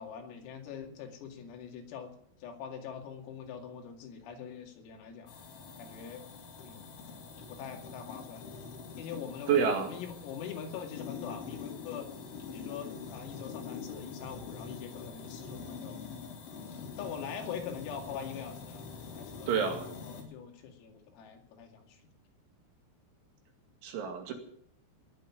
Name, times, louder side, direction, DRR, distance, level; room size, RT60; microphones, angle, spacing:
voice 1, 0.0-2.1 2.4-5.3 5.8-6.3 6.6-6.9 7.5-8.5 9.0-12.1 12.5-16.1 17.0-18.9 19.1-19.5 19.9-22.0, left 7 dB, 80° left, 3 dB, 5.0 m, -43 dB
sound 1, 5.3-20.2, left 5 dB, 65° left, 5.1 m, -45 dB
voice 2, 9.5-9.9 19.5-19.9 23.8-24.3, right 6 dB, 65° right, 4 dB, 4.4 m, -28 dB
20.0 x 7.5 x 9.6 m, 0.66 s
omnidirectional pair, 6.0 m